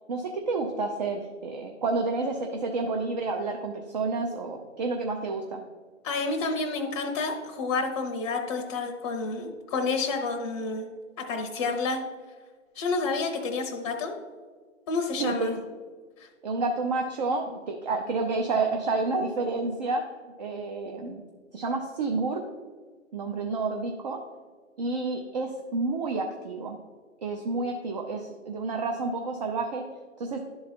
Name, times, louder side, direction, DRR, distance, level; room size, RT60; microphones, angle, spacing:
voice 1, 0.1-5.6 15.2-15.6 16.4-20.1 20.4-21.2 21.5-22.4 23.1-24.2 24.8-26.8 27.2-29.8 30.2-30.4, right 3 dB, 35° right, 3 dB, 0.6 m, -29 dB
voice 2, 6.0-10.9 11.3-12.0 12.7-14.1 14.9-15.5 16.2-16.3, left 3 dB, 20° left, 1 dB, 0.7 m, -29 dB
11.0 x 3.9 x 4.3 m, 1.5 s
hypercardioid pair, 145°, 39 cm